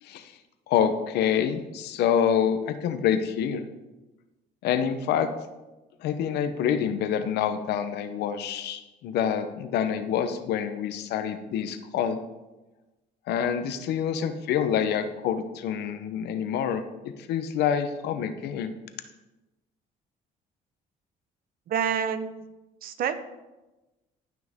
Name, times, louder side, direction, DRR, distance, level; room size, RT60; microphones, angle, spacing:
voice 1, 0.0-0.3 0.7-3.7 4.6-5.3 6.0-12.2 13.3-18.7, left 8 dB, 75° left, 10 dB, 0.9 m, -27 dB
voice 2, 21.7-22.3 22.8-23.2, right 8 dB, 60° right, 11 dB, 0.8 m, -27 dB
14.5 x 6.1 x 3.6 m, 1.1 s
cardioid pair, 110°, 17 cm